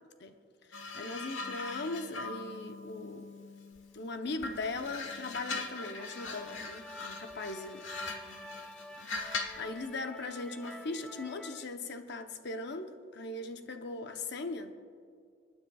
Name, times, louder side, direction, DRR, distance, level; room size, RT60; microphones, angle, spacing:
sound 1, 0.7-4.0 4.4-9.7 10.6-10.9, left 3 dB, 90° left, 1.2 m, -41 dB
voice 1, 0.7-3.3 3.9-7.9 9.6-14.7, left 3 dB, 60° left, 0.8 m, -39 dB
sound 2, 6.0-11.6, left 1 dB, 5° left, 0.3 m, -49 dB
27.5 x 9.6 x 2.3 m
head